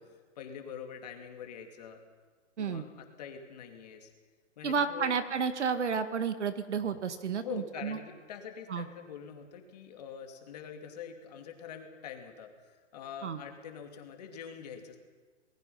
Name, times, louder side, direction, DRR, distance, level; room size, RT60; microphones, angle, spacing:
voice 1, 0.0-2.0 2.6-4.1 4.6-5.1 7.4-15.0, left 7 dB, 35° left, 4 dB, 2.7 m, -44 dB
voice 2, 4.6-8.0 8.7-8.9 13.2-13.4, right 6 dB, 70° right, 10 dB, 2.0 m, -31 dB
28.0 x 20.0 x 5.7 m, 1.4 s
hypercardioid pair, 170°, 37 cm